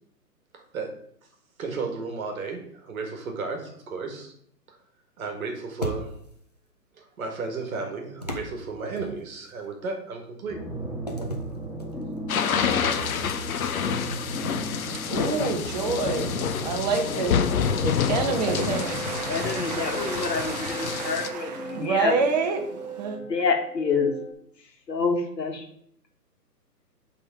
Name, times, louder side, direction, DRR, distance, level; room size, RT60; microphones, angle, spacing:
voice 1, 0.5-0.9 1.6-4.3 4.7-4.8 5.2-6.2 7.0-10.6, right 4 dB, 55° right, 3 dB, 1.8 m, -34 dB
sound 1, 5.8-6.5 8.2-9.6 11.1-12.4 12.9-13.1 14.4-15.9 18.5-20.1, equal, 30° left, 0.4 m, -37 dB
sound 2, 10.5-24.3, right 2 dB, ahead, 1.7 m, -37 dB
sound 3, 12.3-21.3, left 7 dB, 55° left, 0.8 m, -28 dB
voice 2, 14.9-23.2, right 4 dB, 25° right, 5 dB, 0.8 m, -29 dB
voice 3, 15.4-15.8 17.1-17.7 19.3-22.1 23.3-24.1 24.9-25.7, left 5 dB, 80° left, 3 dB, 1.8 m, -28 dB
7.9 x 3.7 x 4.9 m, 0.66 s
hypercardioid pair, 140°, 49 cm